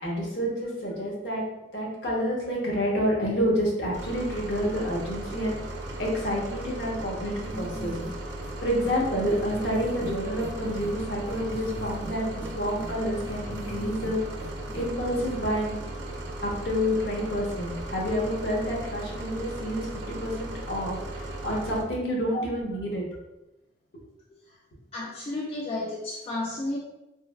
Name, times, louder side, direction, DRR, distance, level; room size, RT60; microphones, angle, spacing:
voice 1, 0.0-1.4 1.7-5.6 6.0-7.9 8.6-14.2 14.7-15.8 16.4-23.0, equal, 60° left, -3 dB, 0.8 m, -29 dB
sound 1, 3.9-21.8, right 1 dB, 65° right, 0.5 m, -37 dB
sound 2, 7.5-8.1 8.4-8.5 8.8-8.9 9.3-10.9 11.2-12.1 12.4-14.1 14.4-14.9 15.2-15.3, equal, 20° right, 0.8 m, -40 dB
voice 2, 24.9-26.8, left 2 dB, 30° left, -4 dB, 0.3 m, -32 dB
3.1 x 2.2 x 2.4 m, 0.95 s
head